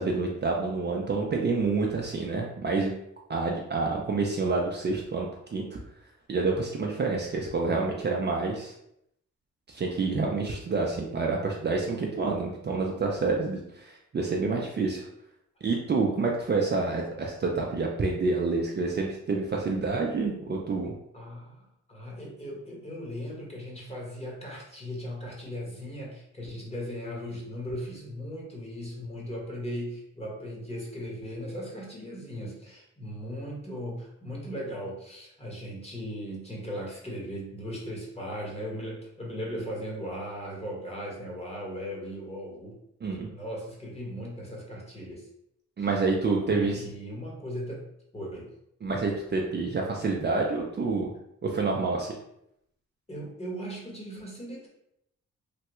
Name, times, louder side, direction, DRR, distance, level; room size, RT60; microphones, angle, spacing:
voice 1, 0.0-2.9 3.3-5.3 5.5-5.8 6.3-8.7 9.7-15.1 15.6-20.9 43.0-43.3 45.8-46.9 48.8-51.1 51.4-52.1, right 3 dB, 35° right, -1 dB, 0.5 m, -28 dB
voice 2, 21.1-42.8 43.3-45.3 45.8-45.9 46.4-47.8 48.1-48.5 53.1-54.7, equal, 20° left, -2 dB, 1.1 m, -38 dB
3.3 x 2.2 x 2.9 m, 0.77 s
cardioid pair, 85°, 31 cm